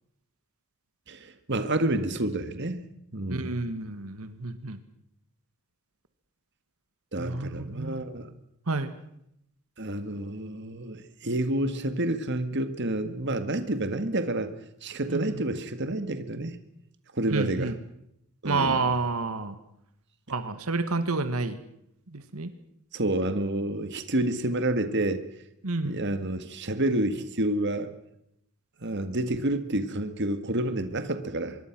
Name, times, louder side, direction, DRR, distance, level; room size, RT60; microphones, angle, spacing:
voice 1, 1.1-2.8 3.1-3.6 7.1-8.4 9.8-14.5 14.8-16.6 17.1-17.7 18.4-18.9 22.9-25.2 25.8-27.9 28.8-31.6, right 1 dB, 50° right, 9 dB, 1.9 m, -29 dB
voice 2, 3.3-4.8 7.2-8.1 8.7-8.9 15.1-15.5 17.3-17.7 18.4-19.6 20.3-21.6 22.1-22.5 25.6-26.0, right 3 dB, 80° right, 10 dB, 1.8 m, -29 dB
25.0 x 22.5 x 6.1 m, 0.76 s
head